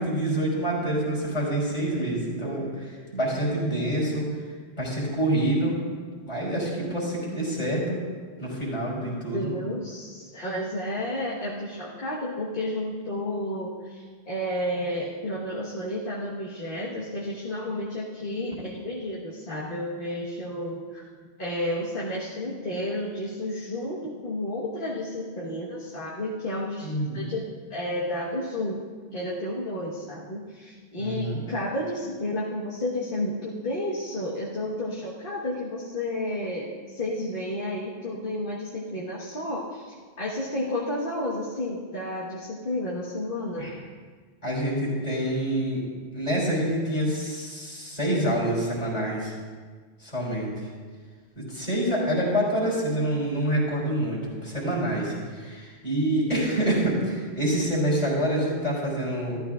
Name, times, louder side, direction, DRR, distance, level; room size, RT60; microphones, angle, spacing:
voice 1, 0.0-4.3 4.8-5.8 6.3-8.0 8.4-9.5 26.8-27.2 31.0-31.4 43.6-43.7 44.4-45.8 46.1-49.3 50.0-50.5 51.4-59.4, right 1 dB, 35° left, -6 dB, 3.6 m, -27 dB
voice 2, 9.0-21.1 21.4-27.4 27.7-28.8 29.1-43.7, left 1 dB, 55° left, -6 dB, 1.6 m, -31 dB
14.0 x 13.0 x 2.4 m, 1.5 s
omnidirectional pair, 1.1 m